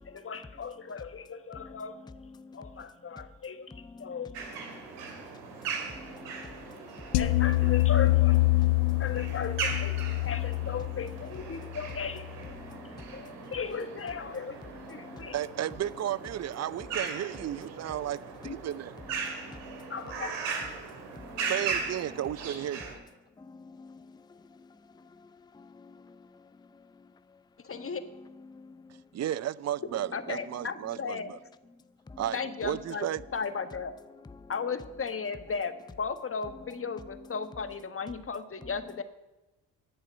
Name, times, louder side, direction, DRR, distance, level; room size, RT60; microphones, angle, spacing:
voice 1, 0.0-2.0 2.5-3.7 4.0-4.6 7.2-8.4 9.0-10.0 10.2-12.3 13.1-14.6 14.9-15.3 18.4-18.6 19.9-20.3 27.6-28.0 30.1-31.3 32.3-33.9 34.5-39.0, left 5 dB, 30° left, 1.4 m, -36 dB
sound 1, 4.3-22.9, right 5 dB, 85° right, 2.5 m, -39 dB
voice 2, 5.9-6.8 12.7-13.0 13.4-13.5 14.9-15.3 19.2-19.9 21.3-21.5 23.4-24.0 25.5-26.2 28.5-28.8 32.1-32.2 34.4-34.5, left 3 dB, 10° left, 0.6 m, -49 dB
sound 2, 7.1-12.4, left 20 dB, 90° left, 0.7 m, -26 dB
voice 3, 15.3-18.9 21.5-22.9 29.1-31.4 32.2-33.2, right 11 dB, 40° right, 0.5 m, -33 dB
10.5 x 7.8 x 9.3 m
supercardioid pair, 65°, 42 cm